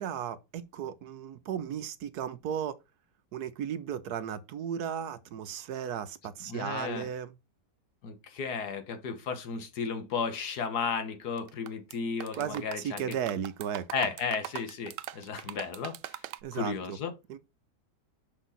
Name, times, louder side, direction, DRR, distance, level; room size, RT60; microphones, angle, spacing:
voice 1, 0.0-2.8 3.3-7.3 12.4-13.9 16.4-17.0 17.3-17.4, right 9 dB, 70° right, 1.2 m, -35 dB
voice 2, 6.5-7.1 8.0-13.2 13.9-16.2 16.5-17.1, left 5 dB, 70° left, 1.7 m, -34 dB
sound 1, 11.4-11.9 12.2-16.4, right 14 dB, 90° right, 1.2 m, -41 dB
6.3 x 6.1 x 3.9 m
omnidirectional pair, 1.8 m